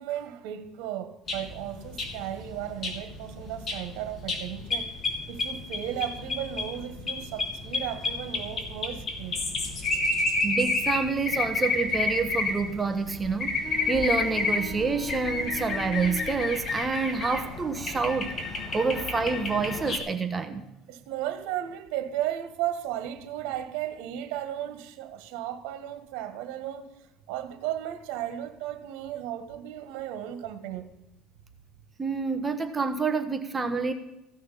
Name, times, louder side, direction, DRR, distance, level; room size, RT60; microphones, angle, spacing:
voice 1, 0.0-9.4 20.9-27.0 27.3-30.9, right 12 dB, 80° right, 1.6 m, -35 dB
sound 1, 1.3-20.0, left 3 dB, 35° left, 3.3 m, -31 dB
voice 2, 10.4-13.6 13.9-18.3 18.7-20.6 32.0-33.9, right 4 dB, 20° right, 1.3 m, -28 dB
sound 2, 13.6-16.6, left 2 dB, 40° right, 2.1 m, -41 dB
16.0 x 6.4 x 9.9 m
cardioid pair, 110°, 0 cm